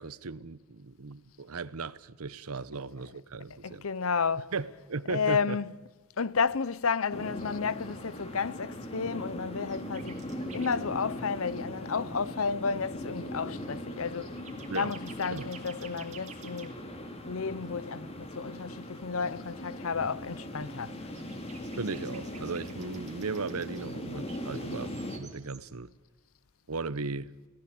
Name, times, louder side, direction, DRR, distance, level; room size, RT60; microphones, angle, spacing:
voice 1, 0.0-3.8 4.5-5.6 14.7-14.9 15.3-15.5 21.8-25.9 26.7-27.3, right 4 dB, 80° right, 0.9 m, -36 dB
voice 2, 3.5-4.5 5.1-5.8 6.2-10.2 10.5-14.4 14.7-16.8 17.3-21.1 23.8-23.9, left 5 dB, 70° left, 0.7 m, -32 dB
sound 1, 7.1-25.2, equal, 30° left, 3.0 m, -40 dB
sound 2, 8.5-9.3 9.7-10.8 12.0-12.2 13.2-13.3 13.7-16.7 20.5-20.7 20.9-24.0 24.3-25.6, right 7 dB, 35° right, 3.0 m, -52 dB
27.5 x 18.0 x 8.6 m
head